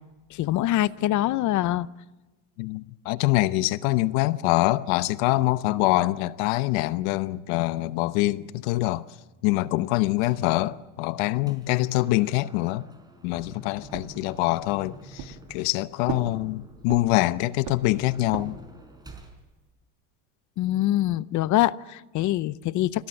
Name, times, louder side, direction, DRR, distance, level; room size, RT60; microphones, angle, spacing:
voice 1, 0.3-1.9 20.6-23.1, left 14 dB, 40° left, 0.8 m, -24 dB
voice 2, 2.6-9.1 9.4-12.8 13.2-18.6, left 18 dB, 70° left, 0.9 m, -25 dB
sound 1, 10.2-10.5 11.0-19.4, right 1 dB, 10° right, 4.6 m, -48 dB
sound 2, 13.9-14.8 15.2-15.8 16.1-17.3 17.6-18.7, right 10 dB, 60° right, 2.9 m, -37 dB
29.0 x 17.0 x 7.7 m
supercardioid pair, 130°, 45 cm